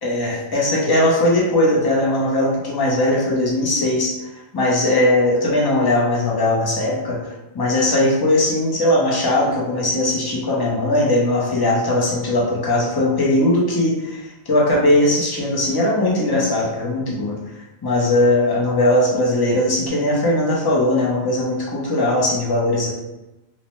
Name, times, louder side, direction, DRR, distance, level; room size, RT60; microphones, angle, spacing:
voice 1, 0.0-4.2 4.5-7.2 7.5-13.9 14.5-17.4 17.8-22.9, left 1 dB, 30° left, -5 dB, 0.5 m, -19 dB
2.6 x 2.1 x 3.0 m, 1.0 s
omnidirectional pair, 1.1 m